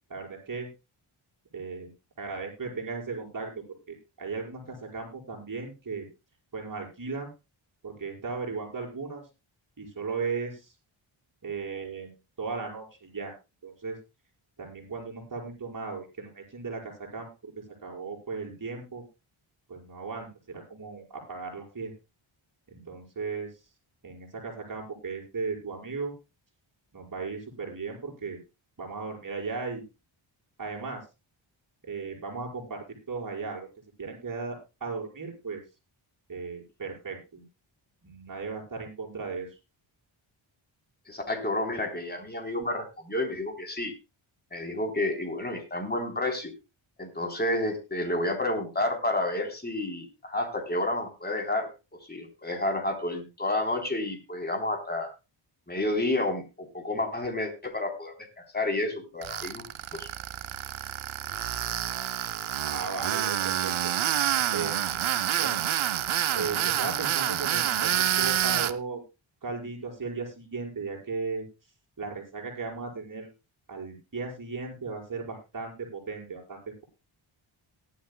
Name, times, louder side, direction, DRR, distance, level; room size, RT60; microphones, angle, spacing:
voice 1, 0.1-0.7 1.5-1.9 2.2-3.5 3.9-6.1 6.5-7.3 7.8-9.2 9.8-10.7 11.4-12.1 12.4-13.3 13.6-14.0 14.6-17.5 17.8-19.0 19.7-21.9 22.7-23.5 24.0-26.1 26.9-28.4 28.8-29.9 30.6-31.0 31.8-33.7 34.0-35.6 36.3-37.4 38.0-39.5 62.6-63.7 64.5-65.6 66.3-69.0 69.4-71.5 72.0-73.3 73.7-76.8, right 4 dB, 40° right, -1 dB, 5.4 m, -36 dB
voice 2, 41.1-43.9 44.5-46.5 47.0-51.7 52.1-55.1 55.7-58.1 58.5-59.6 59.9-60.1, left 1 dB, 20° left, 4 dB, 3.6 m, -30 dB
Tools, 59.2-68.7, right 11 dB, 70° right, 0.8 m, -28 dB
18.0 x 11.5 x 2.2 m, 0.27 s
wide cardioid pair, 95°, 49 cm